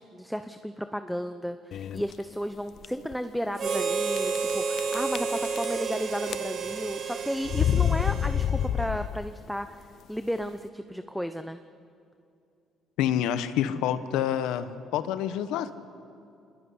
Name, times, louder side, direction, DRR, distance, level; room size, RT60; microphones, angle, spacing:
voice 1, 0.0-11.6, equal, ahead, 8 dB, 1.0 m, -33 dB
sound 1, 1.7-2.1 2.8-2.9 3.1-3.2 4.1-4.5 4.8-5.9 6.2-6.8 7.5-9.4, left 9 dB, 65° left, 0.5 m, -27 dB
Harmonica, 3.6-9.1, right 5 dB, 55° right, 2.7 m, -31 dB
voice 2, 13.0-15.7, left 10 dB, 85° left, 12 dB, 1.2 m, -27 dB
24.5 x 20.0 x 9.7 m, 2.5 s
cardioid pair, 80°, 0 cm